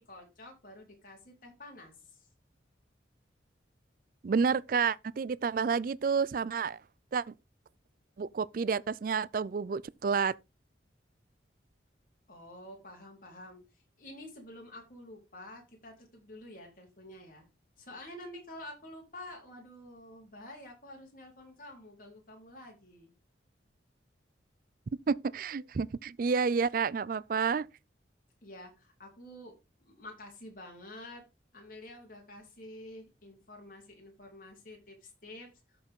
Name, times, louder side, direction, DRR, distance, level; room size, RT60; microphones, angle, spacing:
voice 1, 0.0-2.3 12.3-17.4 17.8-23.1 28.4-31.2 31.5-35.5, left 1 dB, 50° left, 3.8 m, -49 dB
voice 2, 4.2-6.8 7.1-7.3 8.2-10.3 25.1-27.7, right 5 dB, 50° right, 0.4 m, -30 dB
13.5 x 4.9 x 3.7 m
head